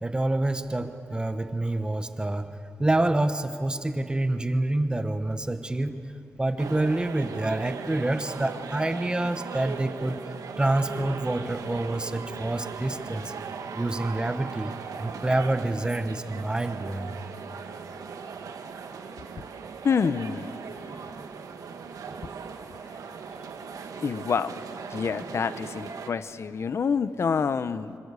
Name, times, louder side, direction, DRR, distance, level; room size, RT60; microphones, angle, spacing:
voice 1, 0.0-2.5 2.8-6.1 6.4-10.2 10.6-13.3 13.7-17.1, right 2 dB, 15° right, 9 dB, 1.0 m, -27 dB
sound 1, 6.6-26.1, right 5 dB, 85° right, 1.9 m, -39 dB
voice 2, 19.8-20.5 20.9-21.1 24.0-24.5 24.9-28.0, left 6 dB, 50° left, 13 dB, 0.8 m, -27 dB
26.0 x 25.5 x 8.3 m, 2.6 s
wide cardioid pair, 135°, 6 cm